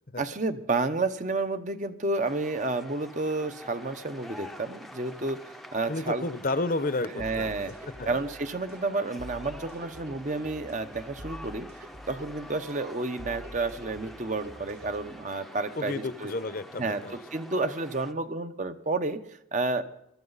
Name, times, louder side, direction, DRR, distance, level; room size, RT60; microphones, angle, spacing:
voice 1, 0.2-6.2 7.2-16.3 16.8-19.2 19.5-19.8, right 3 dB, 40° right, 9 dB, 0.9 m, -31 dB
sound 1, 2.2-18.1, left 1 dB, ahead, 0.7 m, -47 dB
voice 2, 5.9-7.5 8.0-8.2 15.8-17.2, left 2 dB, 45° left, 13 dB, 0.8 m, -31 dB
sound 2, 7.2-15.2, equal, 55° right, 1.8 m, -47 dB
22.0 x 13.5 x 4.1 m, 0.78 s
head